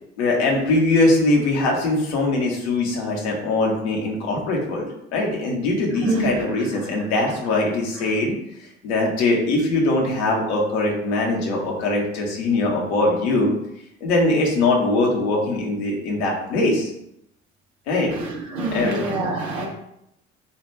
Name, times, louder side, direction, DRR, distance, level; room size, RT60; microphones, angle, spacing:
voice 1, 0.2-4.9 5.1-8.3 8.8-13.5 14.0-16.9 17.9-18.1 18.7-19.0, left 2 dB, 75° left, -1 dB, 1.7 m, -21 dB
voice 2, 18.1-19.7, right 2 dB, 75° right, -1 dB, 1.8 m, -25 dB
8.9 x 3.1 x 3.5 m, 0.78 s
figure-of-eight pair, 50°, 33 cm